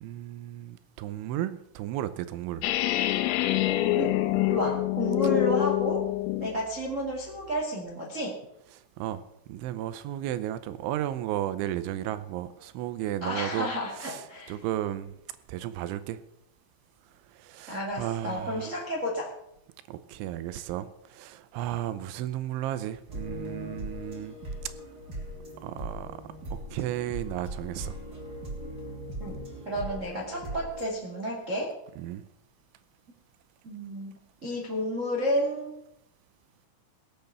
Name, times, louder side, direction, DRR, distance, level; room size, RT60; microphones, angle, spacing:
voice 1, 0.0-2.6 9.0-9.2 9.5-13.7 14.0-14.2 14.5-15.1 15.5-16.2 17.4-18.7 19.9-24.4 25.6-26.2 26.5-28.0 32.0-32.2, right 12 dB, 80° right, 2.8 m, -34 dB
sound 1, 2.6-6.6, left 15 dB, 85° left, 3.3 m, -26 dB
voice 2, 4.5-6.0 6.4-8.3 13.2-14.6 17.7-19.3 29.2-29.4 29.6-31.7 33.6-34.1 34.4-35.7, equal, 55° right, 0.8 m, -31 dB
sound 2, 23.1-30.8, right 1 dB, 25° right, 2.4 m, -39 dB
17.5 x 8.0 x 6.7 m
omnidirectional pair, 5.9 m